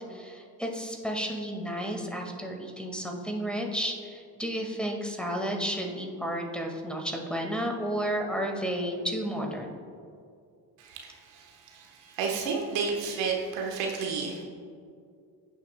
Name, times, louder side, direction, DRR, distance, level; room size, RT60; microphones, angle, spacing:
voice 1, 0.1-9.7, equal, ahead, 0 dB, 1.7 m, -32 dB
voice 2, 10.8-14.4, right 5 dB, 75° right, 1 dB, 1.2 m, -32 dB
15.5 x 6.2 x 2.2 m, 2.3 s
hypercardioid pair, 55°, 47 cm